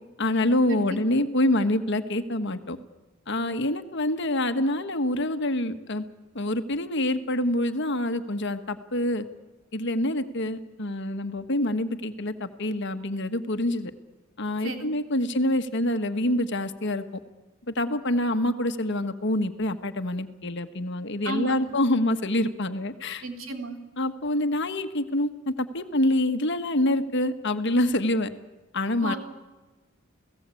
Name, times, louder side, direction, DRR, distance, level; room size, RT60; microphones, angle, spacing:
voice 1, 0.2-2.8 3.3-6.0 6.3-9.2 9.7-13.9 14.4-17.0 17.7-23.2 24.0-28.3 28.7-29.1, left 1 dB, 55° left, 8 dB, 1.5 m, -26 dB
voice 2, 21.2-21.8 23.2-23.8 29.0-29.2, right 1 dB, 65° right, 5 dB, 3.3 m, -32 dB
29.5 x 17.5 x 8.5 m, 1.2 s
head